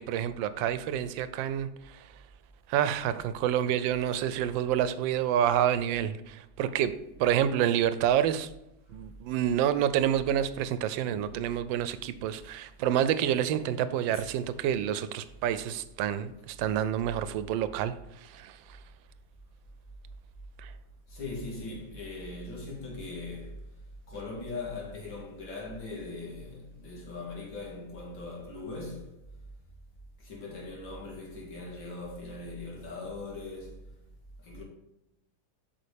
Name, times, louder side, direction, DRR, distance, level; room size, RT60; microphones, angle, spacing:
voice 1, 0.0-1.7 2.7-6.9 7.2-8.5 8.9-17.9 18.2-18.6 20.6-20.7, right 10 dB, 90° right, 1.3 m, -28 dB
voice 2, 21.1-23.6 24.1-29.1 30.2-33.8 34.4-34.6, left 3 dB, 85° left, 2.7 m, -40 dB
8.3 x 6.0 x 3.4 m
omnidirectional pair, 2.0 m